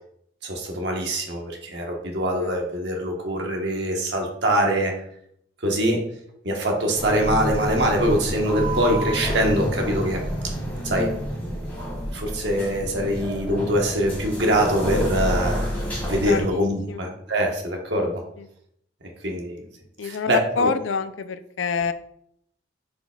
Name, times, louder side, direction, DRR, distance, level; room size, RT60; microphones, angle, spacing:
voice 1, 0.4-4.9 5.6-6.0 6.4-10.2 10.8-11.1 12.1-15.6 16.0-18.2 19.2-19.6 20.0-20.7, equal, 60° right, 1 dB, 1.3 m, -23 dB
sound 1, 7.0-16.4, equal, 10° left, 2.3 m, -28 dB
voice 2, 16.2-16.6 16.9-17.0 18.4-18.5 20.0-21.9, left 5 dB, 80° left, 12 dB, 0.4 m, -27 dB
8.0 x 5.1 x 2.4 m, 0.72 s
head